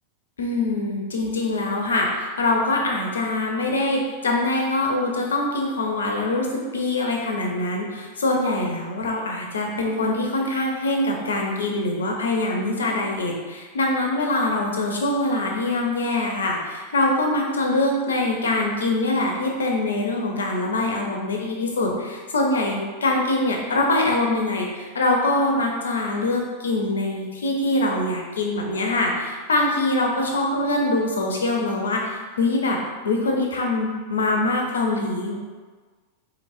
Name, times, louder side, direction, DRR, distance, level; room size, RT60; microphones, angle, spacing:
voice 1, 0.4-32.8 33.0-35.3, left 2 dB, 70° left, 0 dB, 0.6 m, -23 dB
3.9 x 3.1 x 2.5 m, 1.4 s
figure-of-eight pair, 90°, 0 cm